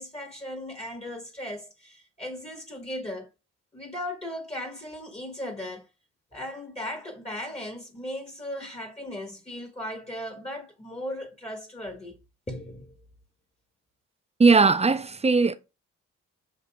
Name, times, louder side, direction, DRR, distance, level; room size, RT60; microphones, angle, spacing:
voice 1, 0.0-3.3 3.7-5.9 6.3-12.2 12.5-12.9, left 1 dB, 20° left, 1.3 m, -37 dB
voice 2, 14.4-15.5, right 4 dB, 20° right, 0.5 m, -19 dB
6.6 x 2.5 x 2.2 m
supercardioid pair, 55°, 31 cm